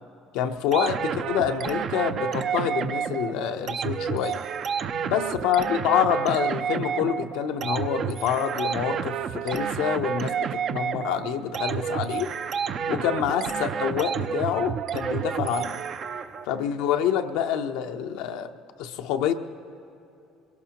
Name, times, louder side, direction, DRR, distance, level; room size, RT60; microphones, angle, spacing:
voice 1, 0.3-4.4 5.0-12.3 12.9-15.8 16.4-18.5 18.8-19.3, left 9 dB, 85° left, 6 dB, 0.7 m, -27 dB
sound 1, 0.7-16.5, right 7 dB, 50° right, 0.5 m, -30 dB
22.5 x 17.0 x 2.9 m, 2.7 s
cardioid pair, 105°, 0 cm